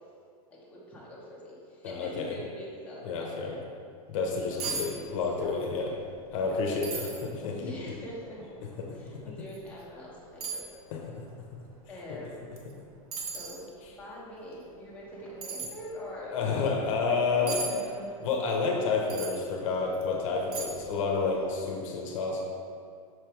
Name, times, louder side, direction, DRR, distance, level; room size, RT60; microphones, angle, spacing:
voice 1, 0.5-3.6 4.5-5.5 6.3-6.6 7.6-10.6 11.9-12.5 13.2-13.7 14.0-18.1, equal, 5° left, -7 dB, 1.1 m, -44 dB
voice 2, 1.8-2.3 3.0-3.6 4.1-5.9 6.3-7.7 10.9-11.0 12.1-12.2 16.2-17.6 18.2-22.4, left 4 dB, 60° left, 0 dB, 0.8 m, -29 dB
sound 1, 4.2-4.3 4.6-4.9 5.2-5.7 6.1-6.2 6.8-7.3 7.9-8.0 9.5-9.6 10.4-10.7 12.6-12.7 13.1-13.6 15.4-15.7 17.5-17.7 19.1-19.4 19.9-20.0 20.5-20.9 21.2-21.3, right 4 dB, 75° right, 1.1 m, -36 dB
6.2 x 3.3 x 4.5 m, 2.3 s
supercardioid pair, 150°, 19 cm